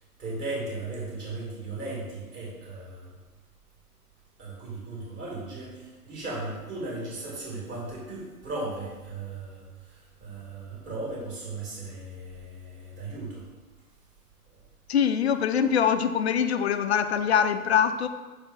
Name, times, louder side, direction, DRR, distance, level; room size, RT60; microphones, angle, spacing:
voice 1, 0.2-3.1 4.4-13.4 14.5-14.6, right 2 dB, 25° right, -5 dB, 2.3 m, -36 dB
voice 2, 14.9-18.1, left 8 dB, 45° left, 9 dB, 0.5 m, -23 dB
5.7 x 4.6 x 5.5 m, 1.2 s
hypercardioid pair, 130°, 46 cm